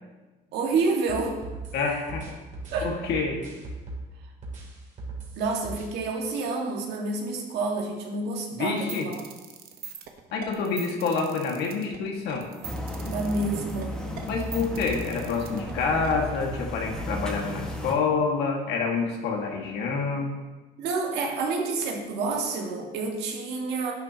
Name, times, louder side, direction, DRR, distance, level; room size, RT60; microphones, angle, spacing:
voice 1, 0.5-1.4 2.7-2.9 5.4-9.2 13.0-14.0 20.8-23.9, right 3 dB, 80° right, 0 dB, 1.7 m, -28 dB
sound 1, 0.8-4.1 4.4-5.9, right 3 dB, 45° right, 3.0 m, -38 dB
voice 2, 1.7-2.3 2.8-3.4 8.5-9.1 10.3-12.5 14.3-20.3, left 4 dB, 85° left, 0 dB, 1.8 m, -27 dB
sound 2, 8.7-16.1, right 7 dB, 65° right, 1.0 m, -42 dB
sound 3, 12.6-17.9, equal, 5° left, 1.5 m, -34 dB
11.0 x 8.6 x 2.9 m, 1.2 s
cardioid pair, 110°, 17 cm